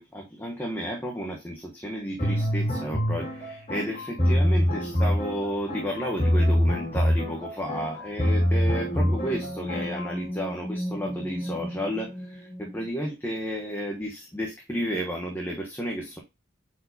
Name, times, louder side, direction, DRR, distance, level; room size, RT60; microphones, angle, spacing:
voice 1, 0.0-16.2, equal, 10° left, -1 dB, 1.0 m, -32 dB
sound 1, 2.2-10.1, equal, 30° left, 2.6 m, -25 dB
sound 2, 8.4-12.9, equal, 15° right, 2.3 m, -36 dB
8.5 x 4.6 x 2.7 m, 0.25 s
head